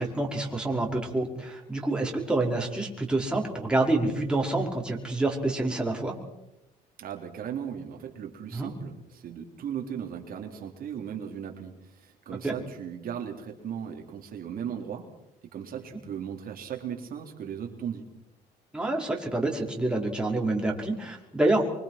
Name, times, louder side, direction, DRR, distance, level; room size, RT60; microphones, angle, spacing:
voice 1, 0.0-6.2 8.5-8.7 12.4-12.5 18.7-21.7, right 2 dB, 5° right, -1 dB, 5.4 m, -27 dB
voice 2, 7.0-15.1 15.5-18.1, right 8 dB, 60° right, 2 dB, 3.7 m, -37 dB
25.0 x 24.5 x 6.0 m, 0.87 s
cardioid pair, 110°, 17 cm